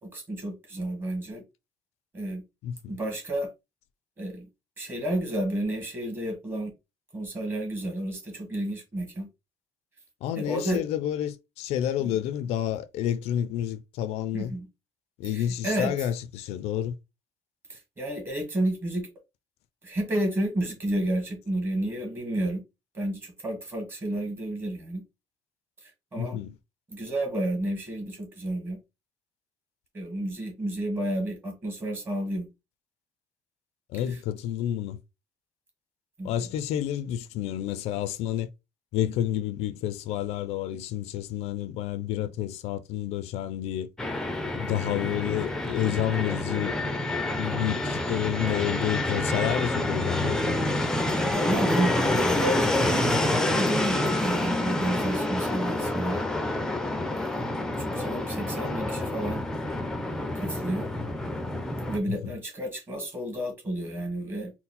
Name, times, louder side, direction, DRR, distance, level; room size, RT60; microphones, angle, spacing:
voice 1, 0.0-1.4 2.1-2.4 2.9-3.5 4.2-4.5 4.8-6.7 7.1-9.3 10.3-10.8 12.0-12.1 14.3-14.7 15.3-15.9 17.7-19.1 19.8-22.6 22.9-25.0 25.8-26.4 26.9-28.8 29.9-32.5 36.2-36.3 51.3-56.2 57.1-57.4 57.8-59.4 60.3-60.9 61.9-64.5, right 1 dB, 20° right, 1.4 m, -31 dB
voice 2, 2.6-2.9 10.2-14.6 15.2-17.0 26.2-26.6 33.9-35.0 36.2-38.5 38.9-43.9 44.5-46.8 47.4-50.7 62.1-62.3, left 11 dB, 70° left, 0.4 m, -30 dB
Fixed-wing aircraft airplane, 44.0-62.0, left 1 dB, 5° left, 0.5 m, -28 dB
4.2 x 2.0 x 4.0 m
cardioid pair, 165°, 11 cm